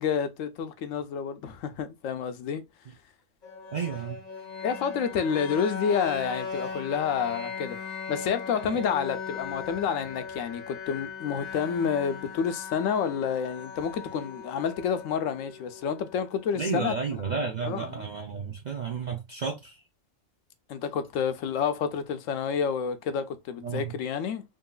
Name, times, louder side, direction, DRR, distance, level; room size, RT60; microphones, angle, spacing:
voice 1, 0.0-2.6 4.6-7.8 8.1-16.9 17.6-18.1 20.7-24.4, left 7 dB, 75° left, 0.9 m, -29 dB
sound 1, 3.4-17.4, left 5 dB, 40° left, 0.7 m, -39 dB
voice 2, 3.7-4.2 8.6-8.8 16.6-19.8 23.6-23.9, right 5 dB, 55° right, 0.5 m, -32 dB
3.6 x 2.7 x 2.3 m
omnidirectional pair, 1.4 m